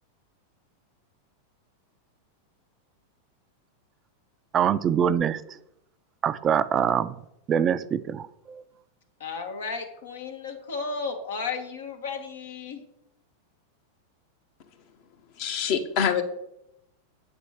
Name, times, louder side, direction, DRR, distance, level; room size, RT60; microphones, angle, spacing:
voice 1, 4.5-5.6 6.2-7.2 7.5-8.6, right 8 dB, 30° right, 13 dB, 0.4 m, -24 dB
voice 2, 9.2-12.8, left 4 dB, 80° left, 3 dB, 1.7 m, -34 dB
voice 3, 15.4-16.2, left 7 dB, 55° left, 7 dB, 1.3 m, -25 dB
8.2 x 4.3 x 7.1 m, 0.81 s
hypercardioid pair, 100°, 0 cm